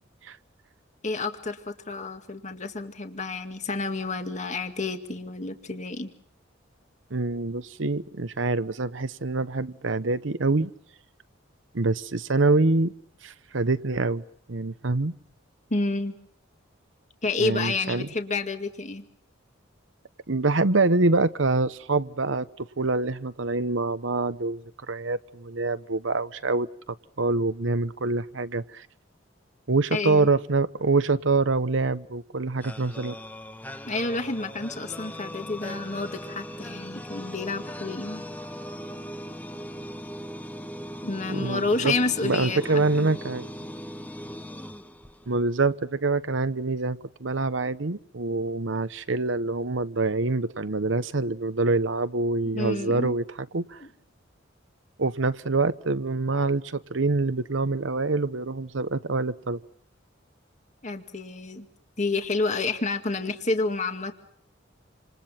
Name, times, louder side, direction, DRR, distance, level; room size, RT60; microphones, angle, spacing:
voice 1, 1.0-6.1 15.7-16.2 17.2-19.1 29.9-30.3 33.9-38.3 41.0-43.1 52.5-53.2 53.8-53.9 60.8-61.7 62.0-64.1, left 3 dB, 40° left, 2.2 m, -29 dB
voice 2, 7.1-10.7 11.7-12.9 13.2-14.2 14.5-15.1 17.4-18.1 20.3-28.9 29.7-33.2 41.3-41.9 42.2-43.5 45.3-53.2 53.5-53.9 55.0-59.6, right 3 dB, 75° right, 1.0 m, -25 dB
sound 1, 32.6-45.5, equal, 10° left, 1.2 m, -39 dB
28.5 x 27.0 x 5.9 m
head